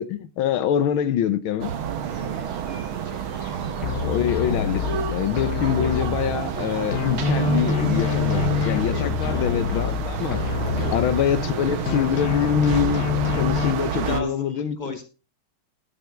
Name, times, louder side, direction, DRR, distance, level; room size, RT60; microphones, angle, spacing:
voice 1, 0.0-1.7 4.0-10.4 10.9-13.1 13.4-14.8, left 9 dB, 75° left, 1.7 m, -25 dB
sound 1, 1.6-14.2, right 8 dB, 75° right, 1.9 m, -29 dB
sound 2, 2.0-12.0, left 3 dB, 45° left, 2.9 m, -52 dB
voice 2, 3.0-3.5 8.9-9.6 10.6-10.9 13.9-15.0, left 3 dB, 20° left, 2.9 m, -36 dB
sound 3, 3.8-6.6 6.9-11.6 11.9-13.7, left 9 dB, 60° left, 1.1 m, -26 dB
12.5 x 12.0 x 3.5 m
omnidirectional pair, 2.3 m